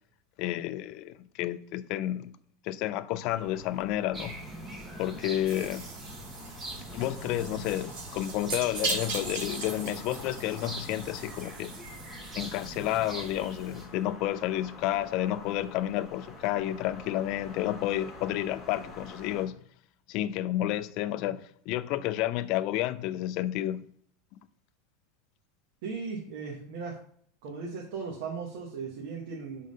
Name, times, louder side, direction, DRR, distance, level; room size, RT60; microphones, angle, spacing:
voice 1, 0.4-2.3 2.6-4.4 5.0-5.8 6.9-11.7 12.4-19.6 20.1-23.9, left 13 dB, 50° left, 0.4 m, -31 dB
sound 1, 3.3-19.5, left 2 dB, 15° left, 1.3 m, -48 dB
sound 2, 4.1-13.8, right 2 dB, 15° right, 1.2 m, -43 dB
sound 3, 5.4-13.6, right 4 dB, 85° right, 2.4 m, -39 dB
voice 2, 25.8-26.9 27.4-29.7, right 5 dB, 65° right, 1.3 m, -37 dB
5.3 x 3.8 x 5.4 m
supercardioid pair, 155°, 0 cm